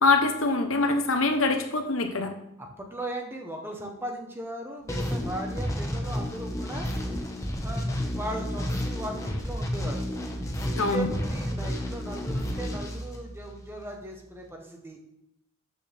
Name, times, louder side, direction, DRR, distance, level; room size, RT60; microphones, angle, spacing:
voice 1, 0.0-2.3 10.7-11.1, left 3 dB, 80° left, 5 dB, 1.1 m, -24 dB
voice 2, 2.6-6.9 7.6-10.1 10.9-15.0, right 1 dB, 10° right, 2 dB, 1.1 m, -37 dB
sound 1, 4.9-13.7, equal, 15° left, 1.1 m, -31 dB
13.0 x 6.2 x 3.5 m, 0.80 s
head